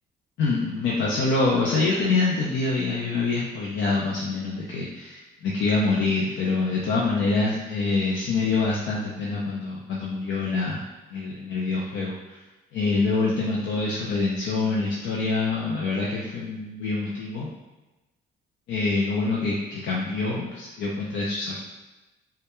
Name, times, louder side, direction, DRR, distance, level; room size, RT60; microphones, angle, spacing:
voice 1, 0.4-10.8 11.1-12.4 12.7-17.5 18.7-21.6, left 3 dB, 70° left, -4 dB, 0.4 m, -25 dB
2.2 x 2.2 x 2.9 m, 1.1 s
cardioid pair, 90°, 20 cm